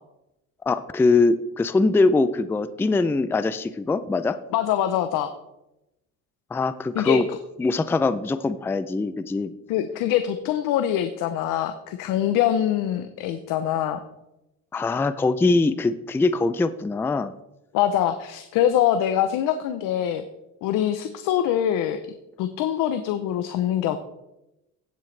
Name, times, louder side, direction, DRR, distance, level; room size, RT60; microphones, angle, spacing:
voice 1, 0.7-4.4 6.5-7.3 7.6-9.5 14.7-17.3, left 3 dB, 5° left, 13 dB, 0.4 m, -22 dB
voice 2, 4.5-5.3 6.9-7.2 9.7-14.0 17.7-20.2 20.6-22.0 22.4-24.0, left 11 dB, 85° left, 9 dB, 0.8 m, -24 dB
16.0 x 7.8 x 3.3 m, 0.92 s
cardioid pair, 120°, 32 cm